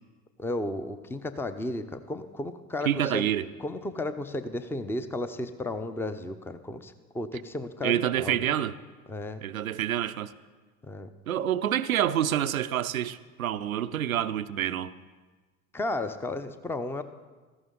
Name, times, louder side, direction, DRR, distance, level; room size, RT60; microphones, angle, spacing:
voice 1, 0.4-3.3 3.6-8.5 9.1-9.4 10.9-11.1 15.7-17.0, left 2 dB, 5° left, 0.6 m, -33 dB
voice 2, 2.9-3.5 7.8-8.8 9.4-10.3 11.3-14.9, right 10 dB, 85° right, 0.5 m, -27 dB
17.0 x 14.5 x 3.9 m
figure-of-eight pair, 70°, 40 cm